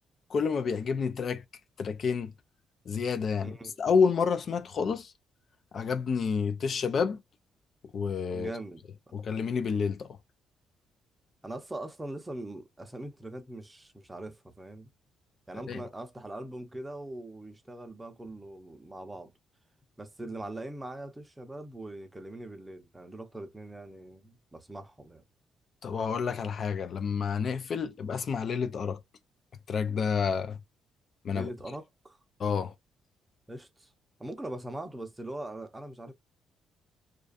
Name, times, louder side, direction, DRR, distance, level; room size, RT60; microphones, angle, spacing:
voice 1, 0.3-1.4 1.8-2.3 2.9-5.1 5.7-7.2 7.9-8.5 9.1-10.2 15.7-15.8 25.8-29.0 29.7-30.6 31.2-31.5 32.4-32.7, left 6 dB, 55° left, 0.3 m, -29 dB
voice 2, 3.4-3.8 8.3-9.2 11.4-14.9 15.5-19.3 20.0-25.2 31.3-32.2 33.5-33.9 34.2-36.1, right 1 dB, 15° right, 0.7 m, -41 dB
2.4 x 2.3 x 2.4 m
cardioid pair, 90°, 0 cm